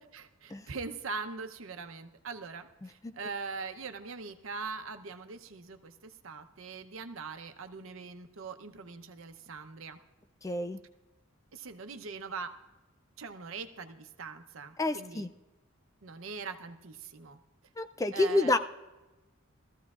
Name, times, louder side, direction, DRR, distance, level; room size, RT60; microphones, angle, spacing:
voice 1, 0.1-10.0 11.5-12.5 13.2-15.3 16.0-17.4 18.1-18.6, right 4 dB, 70° right, 7 dB, 0.8 m, -42 dB
voice 2, 10.4-10.8 14.8-15.3 17.8-18.6, left 2 dB, 15° left, 9 dB, 0.3 m, -28 dB
20.0 x 14.5 x 2.4 m, 1.1 s
head